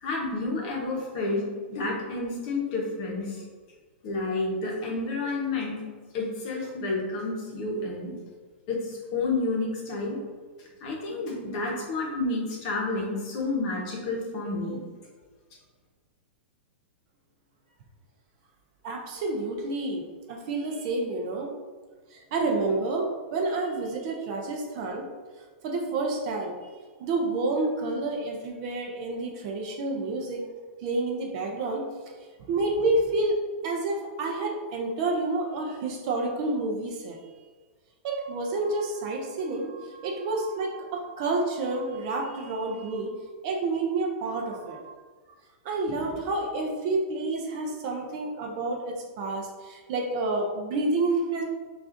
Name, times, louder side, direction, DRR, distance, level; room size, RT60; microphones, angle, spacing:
voice 1, 0.0-1.4 1.7-3.4 4.0-5.8 6.1-8.1 8.7-10.2 10.8-14.8, left 3 dB, 35° left, -2 dB, 0.9 m, -30 dB
voice 2, 18.8-21.5 22.1-25.1 25.6-26.7 27.0-30.4 30.8-31.9 32.5-37.2 38.0-43.2 43.4-44.9 45.6-51.4, right 2 dB, 35° right, 1 dB, 0.4 m, -29 dB
5.9 x 2.4 x 2.5 m, 1.4 s
supercardioid pair, 170°, 6 cm